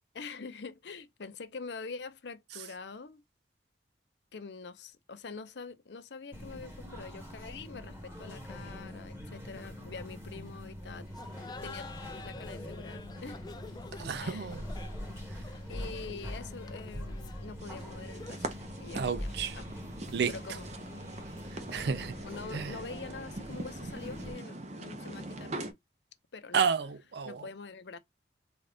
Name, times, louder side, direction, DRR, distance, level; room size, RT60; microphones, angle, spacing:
voice 1, 0.1-3.2 4.3-11.1 11.6-11.9 12.2-13.5 13.9-14.5 15.7-19.7 20.3-20.6 22.2-25.5 26.3-26.6 27.2-28.0, left 4 dB, 75° left, 0.6 m, -45 dB
sound 1, 6.3-24.3, left 1 dB, 15° right, 1.8 m, -43 dB
Laughter, 11.1-18.6, left 3 dB, 25° left, 0.3 m, -48 dB
voice 2, 14.0-14.6 18.9-19.6 20.1-20.3 21.7-22.2 22.5-22.7 26.5-27.5, right 6 dB, 70° right, 0.4 m, -31 dB
sound 2, 17.6-25.7, right 2 dB, 40° right, 0.8 m, -42 dB
3.9 x 2.4 x 3.4 m
head